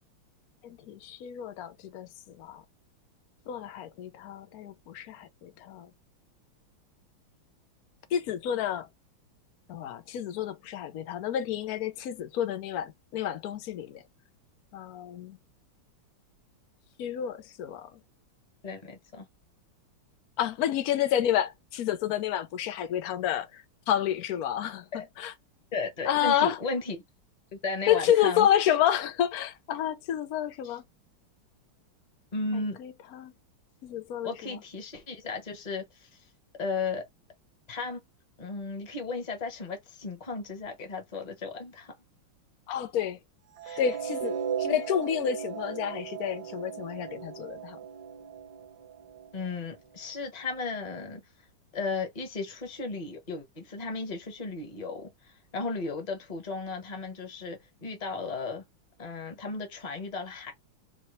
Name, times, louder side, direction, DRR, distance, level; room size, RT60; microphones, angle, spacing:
voice 1, 0.6-2.1 2.4-2.6 3.5-5.9 8.1-8.9 9.7-14.0 14.7-15.4 17.0-17.9 20.4-24.9 25.2-25.3 26.1-26.6 27.9-30.8 32.8-33.3 33.8-34.6 42.7-43.2 43.8-47.8, left 10 dB, 65° left, 0.9 m, -29 dB
voice 2, 18.6-19.3 24.9-25.1 25.7-27.0 27.5-28.5 30.6-30.8 32.3-32.8 34.2-36.1 36.6-37.0 37.7-38.0 38.4-41.9 43.6-43.8 49.3-51.2 51.7-55.1 55.5-58.6 59.0-60.5, left 4 dB, 25° left, 1.0 m, -35 dB
sound 1, 43.6-49.8, right 8 dB, 55° right, 1.4 m, -37 dB
4.1 x 2.9 x 3.1 m
omnidirectional pair, 2.4 m